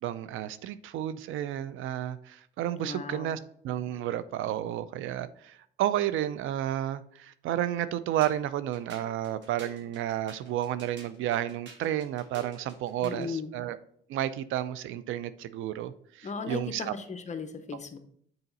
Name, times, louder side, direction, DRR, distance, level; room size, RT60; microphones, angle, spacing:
voice 1, 0.0-3.4 3.6-13.8 14.1-16.9, right 12 dB, 80° right, 14 dB, 0.4 m, -31 dB
voice 2, 2.8-3.4 13.0-13.5 16.2-18.0, left 4 dB, 35° left, 8 dB, 0.8 m, -36 dB
sound 1, 8.2-13.4, right 2 dB, 65° right, 1.7 m, -51 dB
6.9 x 3.9 x 4.0 m, 0.66 s
cardioid pair, 90°, 20 cm